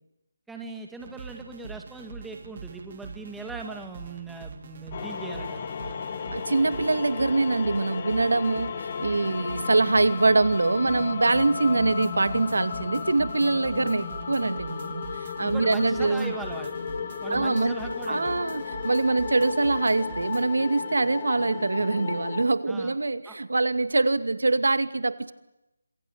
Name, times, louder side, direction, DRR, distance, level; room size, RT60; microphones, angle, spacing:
voice 1, 0.5-5.8 15.4-16.7 17.2-18.4 22.7-23.0 23.3-23.4, right 3 dB, 5° right, 3 dB, 2.2 m, -39 dB
sound 1, 1.0-20.5, right 5 dB, 35° right, 3.1 m, -44 dB
sound 2, 4.9-22.4, left 6 dB, 30° left, 2.5 m, -34 dB
voice 2, 6.3-16.3 17.3-17.7 18.1-25.3, right 3 dB, 80° right, 11 dB, 2.3 m, -24 dB
26.5 x 23.5 x 8.9 m, 0.90 s
figure-of-eight pair, 170°, 0 cm